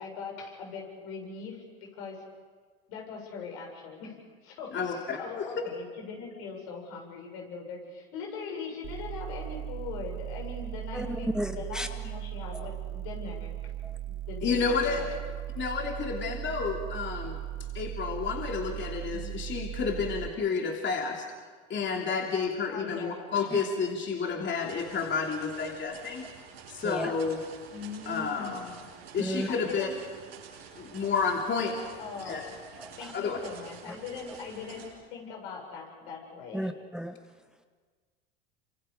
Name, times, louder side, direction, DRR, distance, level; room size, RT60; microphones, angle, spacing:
voice 1, 0.0-1.6 2.0-2.2 2.9-4.1 4.4-4.8 5.2-11.3 11.5-13.6 14.0-14.6 14.9-15.2 19.1-19.4 22.7-23.2 27.7-28.8 29.5-29.9 31.6-32.6 33.0-34.9 35.1-36.7, left 5 dB, 70° left, 0 dB, 7.3 m, -41 dB
voice 2, 4.7-5.5 14.4-15.1 15.6-17.4 17.7-21.3 21.7-26.3 26.7-27.4 28.0-28.7 29.1-29.9 30.7-31.7 32.2-32.4 33.1-33.4, left 5 dB, 35° left, 1 dB, 3.1 m, -30 dB
sound 1, 8.8-20.3, right 13 dB, 40° right, 1.0 m, -38 dB
voice 3, 10.9-11.9 12.5-12.6 13.8-14.0 23.5-23.6 26.8-27.1 29.2-29.5 32.8-33.1 33.9-34.0 36.5-37.2, equal, ahead, 8 dB, 1.1 m, -34 dB
sound 2, 24.6-34.9, right 6 dB, 85° right, 6.2 m, -49 dB
28.0 x 26.0 x 5.2 m, 1.5 s
hypercardioid pair, 80°, 30 cm